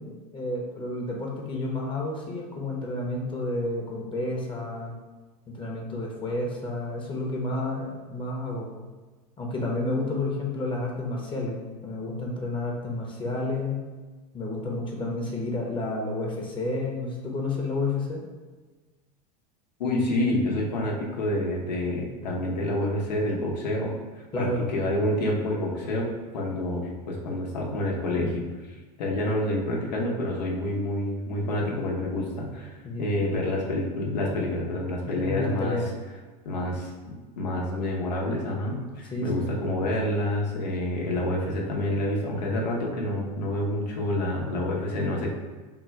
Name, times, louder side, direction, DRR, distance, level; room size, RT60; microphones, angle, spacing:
voice 1, 0.0-4.9 5.5-8.7 9.4-13.8 14.3-18.2 24.3-24.7 32.8-33.1 35.2-35.9 39.1-39.5, left 2 dB, 25° left, -1 dB, 0.9 m, -30 dB
voice 2, 19.8-23.9 24.4-28.5 29.0-35.8 36.4-45.3, left 1 dB, 85° left, -2 dB, 0.9 m, -28 dB
3.7 x 2.3 x 4.4 m, 1.3 s
hypercardioid pair, 95°, 21 cm